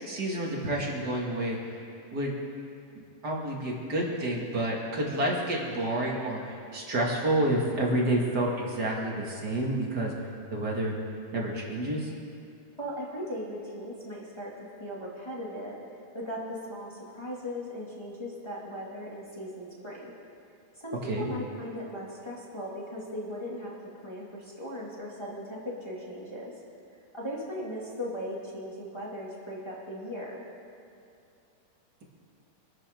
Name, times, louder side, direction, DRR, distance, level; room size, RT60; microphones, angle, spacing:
voice 1, 0.0-1.7 2.1-2.4 3.0-11.0 11.3-12.1 21.0-21.3, right 1 dB, 35° right, -2 dB, 2.0 m, -29 dB
voice 2, 12.8-14.5 14.8-15.8 16.1-20.1 20.8-23.7 24.0-26.5 27.1-30.4, equal, 10° left, -6 dB, 1.7 m, -38 dB
26.0 x 13.0 x 3.8 m, 2.5 s
omnidirectional pair, 4.1 m